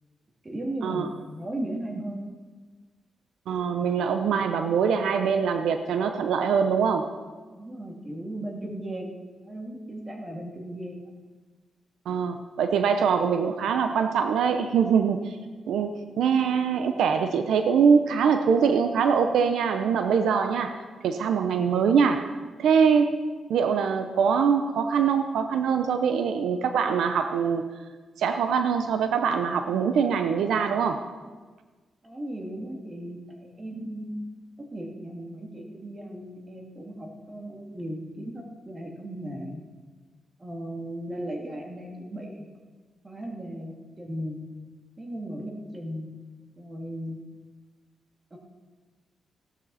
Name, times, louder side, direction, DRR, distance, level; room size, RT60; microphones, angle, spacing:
voice 1, 0.4-2.3 7.5-9.1 9.5-11.1 32.0-34.2 34.7-39.6 40.4-42.5 43.0-44.4 45.0-46.1 46.6-47.2 48.3-48.4, right 1 dB, 25° right, 0 dB, 2.7 m, -36 dB
voice 2, 3.5-7.1 12.1-15.4 15.7-20.8 21.0-22.3 22.6-23.2 23.5-27.6 28.2-31.0, right 6 dB, 85° right, 7 dB, 0.8 m, -23 dB
17.0 x 12.0 x 4.2 m, 1.4 s
cardioid pair, 100°, 0 cm